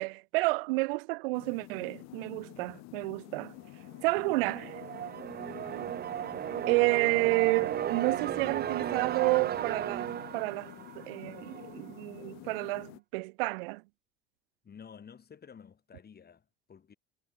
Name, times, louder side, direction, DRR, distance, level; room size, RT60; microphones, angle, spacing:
voice 1, 0.0-3.5 4.0-4.6 6.7-13.8, right 25 dB, 60° right, 0.4 m, -30 dB
sound 1, 1.3-13.0, left 22 dB, 55° left, 2.3 m, -49 dB
sound 2, 4.0-11.8, right 10 dB, 30° right, 0.8 m, -35 dB
voice 2, 4.1-4.7 5.6-5.8 14.6-16.9, left 7 dB, 30° left, 5.1 m, -52 dB
figure-of-eight pair, 70°, 33 cm